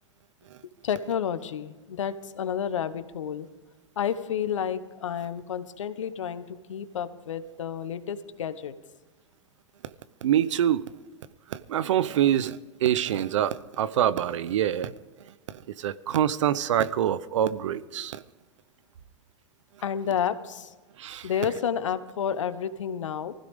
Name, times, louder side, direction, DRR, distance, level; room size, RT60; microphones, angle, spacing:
voice 1, 0.8-3.5 4.0-8.7 18.0-18.1 19.8-20.7 21.2-23.3, left 8 dB, 90° left, 1.1 m, -30 dB
voice 2, 10.2-10.9 11.5-14.9 15.2-18.2 21.0-21.3, right 10 dB, 80° right, 0.8 m, -26 dB
20.5 x 15.5 x 3.6 m
hypercardioid pair, 120°, 16 cm